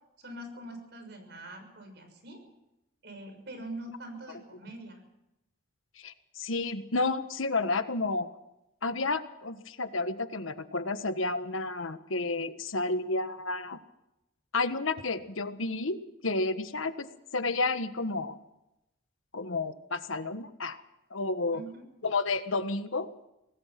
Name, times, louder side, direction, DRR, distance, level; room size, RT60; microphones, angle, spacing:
voice 1, 0.2-2.4 3.0-5.0 21.5-21.8, right 1 dB, 55° right, 6 dB, 6.4 m, -43 dB
voice 2, 6.0-8.3 8.8-13.8 14.5-17.1 17.3-18.4 19.3-20.8 21.1-21.6 22.0-23.1, left 3 dB, 90° left, 10 dB, 1.5 m, -31 dB
26.0 x 18.5 x 6.0 m, 0.90 s
head